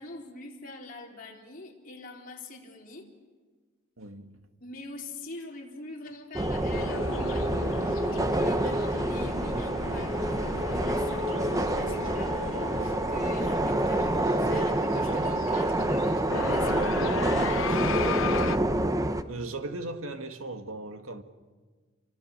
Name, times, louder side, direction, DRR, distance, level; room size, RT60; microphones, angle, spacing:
voice 1, 0.0-3.1 4.6-18.1, left 2 dB, 45° left, 4.2 m, -44 dB
voice 2, 4.0-4.4 19.3-21.2, right 2 dB, 90° right, 2.0 m, -37 dB
sound 1, 6.3-19.2, right 1 dB, 15° right, 1.0 m, -27 dB
sound 2, 6.7-18.6, left 5 dB, 70° left, 0.9 m, -36 dB
29.5 x 24.5 x 6.8 m
head